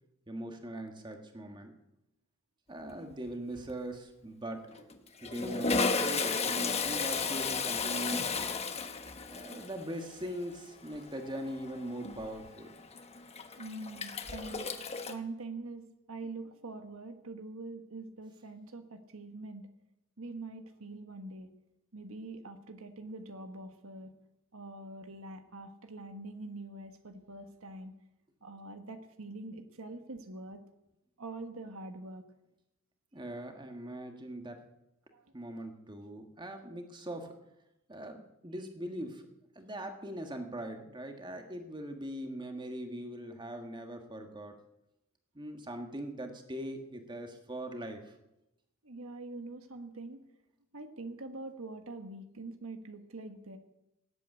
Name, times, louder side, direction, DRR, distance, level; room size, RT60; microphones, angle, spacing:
voice 1, 0.3-1.7 2.7-4.8 5.2-8.5 9.3-12.8 33.1-34.6 35.3-37.3 37.9-39.2 39.5-44.6 45.3-48.1, right 1 dB, 20° right, 5 dB, 1.6 m, -41 dB
voice 2, 2.8-3.1 13.6-14.7 15.1-19.7 20.2-21.5 21.9-24.1 24.5-27.9 28.4-30.6 31.2-32.3 35.1-35.3 48.8-50.2 50.7-53.6, right 2 dB, 70° right, 7 dB, 1.3 m, -44 dB
Toilet flush, 2.9-3.3 3.6-3.7 4.7-15.1, left 4 dB, 30° left, 1.1 m, -34 dB
17.5 x 8.4 x 8.2 m, 0.89 s
head